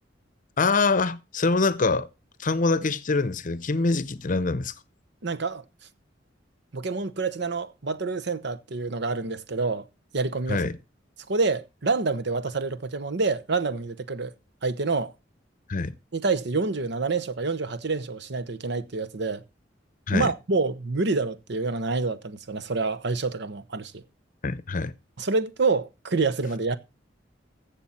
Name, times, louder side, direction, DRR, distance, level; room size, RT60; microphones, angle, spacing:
voice 1, 0.6-2.1 2.4-4.7 10.5-10.8 15.7-15.9 20.1-20.3 24.4-24.9, left 3 dB, 45° left, 0.7 m, -24 dB
voice 2, 5.2-5.6 6.7-9.8 10.1-10.6 11.3-14.3 14.6-15.1 16.1-19.4 20.1-24.0 25.2-26.8, right 3 dB, 65° right, 0.9 m, -27 dB
14.5 x 7.2 x 4.3 m
head